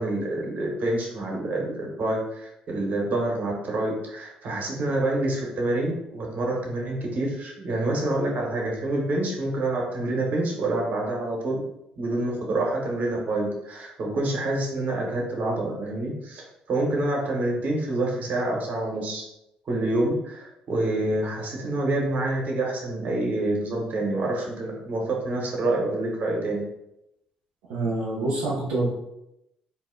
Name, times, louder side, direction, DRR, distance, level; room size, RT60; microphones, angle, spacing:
voice 1, 0.0-11.6 12.0-19.2 19.7-26.6, right 2 dB, 60° right, -2 dB, 1.0 m, -27 dB
voice 2, 27.7-28.9, right 2 dB, 85° right, -8 dB, 0.7 m, -26 dB
2.7 x 2.1 x 3.7 m, 0.85 s
hypercardioid pair, 55°, 3 cm